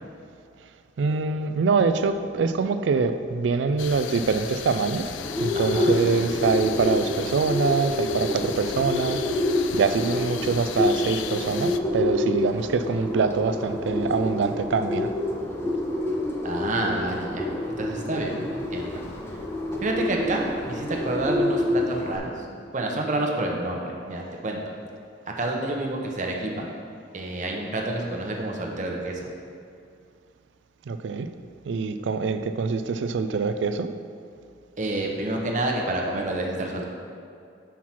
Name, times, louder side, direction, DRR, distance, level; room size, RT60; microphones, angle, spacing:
voice 1, 1.0-5.1 5.4-15.1 30.9-31.3 31.7-33.9, right 4 dB, 80° right, 11 dB, 0.4 m, -24 dB
sound 1, 3.8-11.8, left 9 dB, 85° left, 0.3 m, -36 dB
Bird, 5.2-22.2, left 1 dB, 15° left, 0.6 m, -28 dB
voice 2, 5.5-5.9 16.4-17.5 17.8-19.0 19.3-19.4 19.8-22.5 22.7-24.6 25.4-26.7 27.1-29.2 34.8-36.9, right 2 dB, 40° right, 0 dB, 0.8 m, -28 dB
5.8 x 4.6 x 5.8 m, 2.4 s
head